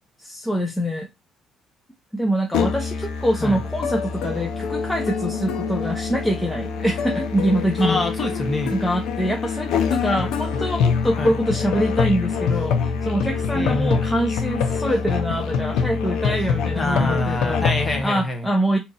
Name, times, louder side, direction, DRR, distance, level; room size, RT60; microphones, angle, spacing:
voice 1, 0.2-1.1 2.1-8.0 8.7-17.6 18.0-18.8, equal, 5° left, 0.5 m, -24 dB
Musical instrument, 2.5-18.0, left 5 dB, 90° left, 0.6 m, -25 dB
voice 2, 7.8-8.8 11.2-11.3 13.5-14.0 16.7-18.5, left 2 dB, 20° left, 0.9 m, -25 dB
2.8 x 2.5 x 4.0 m
cardioid pair, 125°, 0 cm